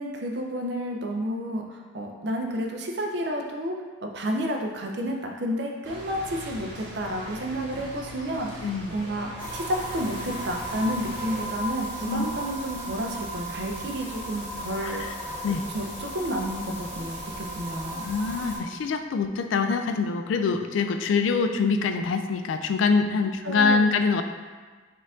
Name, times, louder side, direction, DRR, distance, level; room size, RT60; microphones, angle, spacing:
voice 1, 0.0-3.8 4.0-8.7 8.9-15.0 15.7-18.1 23.4-23.9, equal, 60° right, 2 dB, 0.5 m, -31 dB
sound 1, 5.8-11.5, equal, 85° right, 1.1 m, -40 dB
voice 2, 8.6-9.0 12.1-12.3 14.8-15.1 15.4-15.7 18.0-24.2, left 4 dB, 85° left, 8 dB, 0.3 m, -25 dB
sound 2, 9.4-18.6, right 1 dB, 10° left, 1.1 m, -36 dB
4.4 x 2.5 x 3.5 m, 1.4 s
head